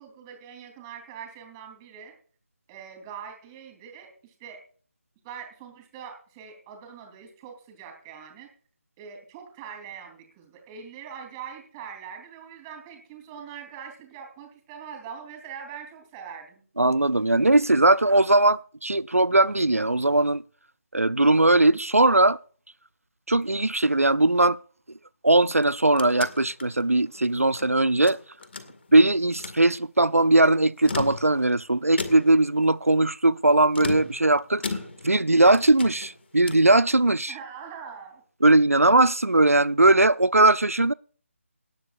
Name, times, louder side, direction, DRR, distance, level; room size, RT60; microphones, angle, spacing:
voice 1, 0.0-2.2 2.7-4.6 5.2-8.5 9.0-16.7 37.3-38.2, right 7 dB, 15° right, 3.6 m, -42 dB
voice 2, 16.8-20.4 20.9-22.4 23.3-24.6 25.2-28.2 28.9-34.8 35.0-37.3 38.4-40.9, right 2 dB, 90° right, 0.5 m, -20 dB
sound 1, 25.5-27.7 28.0-29.0 29.3-29.6 30.7-31.5 32.0-32.5 33.7-35.2 35.5-36.7, left 3 dB, 50° left, 2.0 m, -36 dB
18.5 x 12.0 x 2.6 m
figure-of-eight pair, 155°, 8 cm